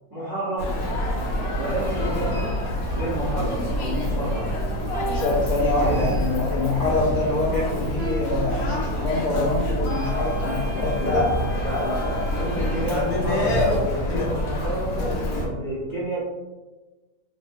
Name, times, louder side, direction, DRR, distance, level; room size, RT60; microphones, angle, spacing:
voice 1, 0.1-0.7 1.6-2.4 2.9-4.8 5.8-6.1 11.0-11.3 11.6-16.2, right 1 dB, 20° right, -9 dB, 0.8 m, -29 dB
Human voice, 0.6-15.5, left 1 dB, 75° left, 1.1 m, -26 dB
sound 1, 1.9-4.4 4.9-6.4 8.0-9.7, right 3 dB, 70° right, 0.5 m, -38 dB
voice 2, 5.1-11.3, left 2 dB, 55° left, -7 dB, 0.6 m, -25 dB
sound 2, 9.8-14.0, left 4 dB, 50° right, 1.3 m, -40 dB
3.1 x 2.0 x 2.6 m, 1.2 s
omnidirectional pair, 1.6 m